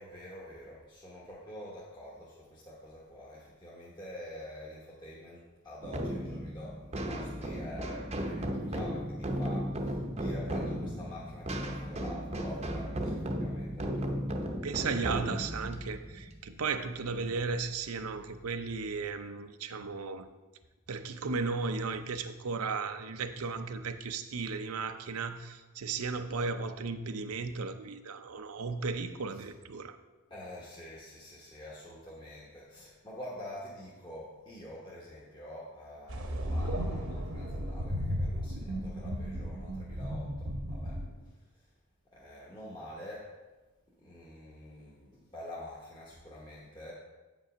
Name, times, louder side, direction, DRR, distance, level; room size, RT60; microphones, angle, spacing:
voice 1, 0.0-13.9 17.1-17.4 29.3-29.4 30.3-41.0 42.1-43.3 44.0-46.9, left 1 dB, 20° left, -6 dB, 1.2 m, -46 dB
sound 1, 5.8-17.2, equal, 30° right, 0.7 m, -35 dB
voice 2, 13.7-14.1 14.6-20.3 20.9-30.0 41.0-41.2, right 4 dB, 85° right, 9 dB, 0.6 m, -35 dB
sound 2, 36.1-41.1, equal, 65° right, 1.0 m, -35 dB
8.3 x 5.4 x 5.0 m, 1.2 s
head